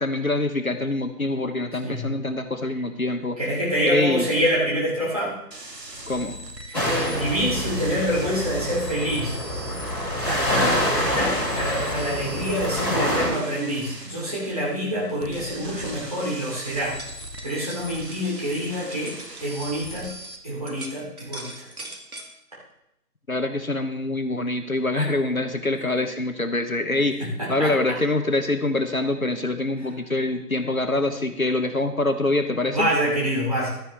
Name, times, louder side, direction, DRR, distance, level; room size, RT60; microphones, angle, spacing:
voice 1, 0.0-3.4 3.9-4.3 6.1-6.4 23.3-32.9, left 2 dB, 60° left, 8 dB, 1.1 m, -25 dB
voice 2, 3.4-5.3 6.7-6.8 7.1-9.4 10.2-17.0 17.4-19.1 19.4-20.1 20.4-21.7 24.9-25.0 27.2-28.0 32.7-33.7, equal, 25° right, -7 dB, 3.0 m, -26 dB
sound 1, 5.5-20.4, right 1 dB, 80° right, 1.8 m, -40 dB
sound 2, 6.7-13.3, equal, 25° left, 5.6 m, -26 dB
sound 3, 17.0-20.3 20.7-22.3, right 1 dB, 60° right, 2.0 m, -41 dB
15.0 x 11.5 x 3.3 m, 0.81 s
figure-of-eight pair, 170°, 48 cm